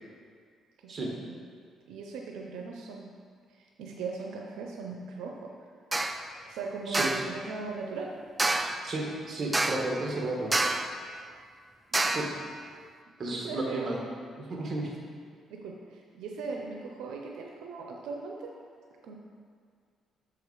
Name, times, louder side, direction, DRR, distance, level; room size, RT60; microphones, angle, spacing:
voice 1, 0.8-1.3 1.9-3.1 3.6-5.5 6.1-8.1 11.9-12.2 13.3-14.1 15.5-18.5 19.0-19.1, right 4 dB, 90° right, 0 dB, 0.6 m, -39 dB
medium pipe bang, 5.9-6.2 6.9-7.3 8.4-8.9 9.5-10.0 10.5-11.0 11.9-12.4, right 2 dB, 15° right, 0.4 m, -28 dB
voice 2, 8.8-10.5 12.1-12.3 13.2-14.0 14.4-14.9, right 2 dB, 40° right, -1 dB, 1.4 m, -33 dB
6.7 x 4.8 x 4.8 m, 2.1 s
cardioid pair, 90°, 0 cm